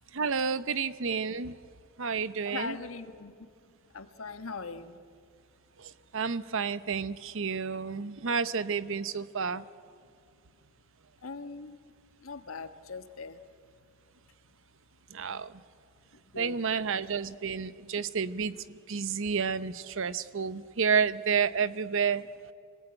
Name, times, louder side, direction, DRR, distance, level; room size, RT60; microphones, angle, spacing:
voice 1, 0.1-1.6 2.0-2.8 6.1-9.6 15.1-15.5 16.4-18.5 18.9-22.2, right 6 dB, 65° right, 0.8 m, -30 dB
voice 2, 2.4-3.4 3.9-5.0 11.2-11.8 12.2-13.4 16.3-16.6, left 4 dB, 75° left, 1.5 m, -40 dB
25.5 x 19.5 x 9.0 m
head